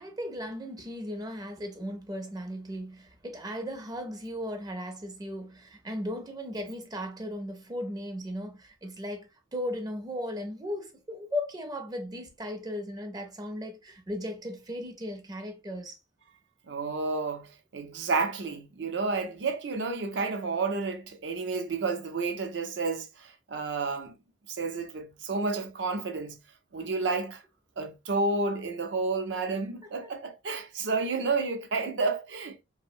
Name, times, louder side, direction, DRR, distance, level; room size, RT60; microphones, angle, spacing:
voice 1, 0.0-16.0, left 1 dB, 20° right, 0.5 m, -36 dB
voice 2, 16.7-24.1 24.5-26.4 26.7-27.4 27.8-32.6, right 3 dB, 70° right, 0.6 m, -31 dB
2.6 x 2.1 x 2.5 m
head